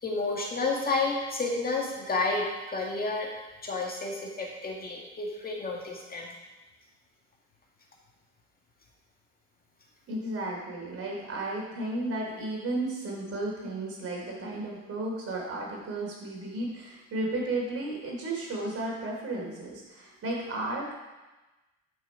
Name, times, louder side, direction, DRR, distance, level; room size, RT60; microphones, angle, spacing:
voice 1, 0.0-3.3 3.6-6.3, left 3 dB, 30° left, -1 dB, 1.9 m, -30 dB
voice 2, 10.1-20.9, right 2 dB, 50° right, -2 dB, 3.6 m, -33 dB
11.5 x 6.2 x 5.0 m, 1.1 s
cardioid pair, 105°, 30 cm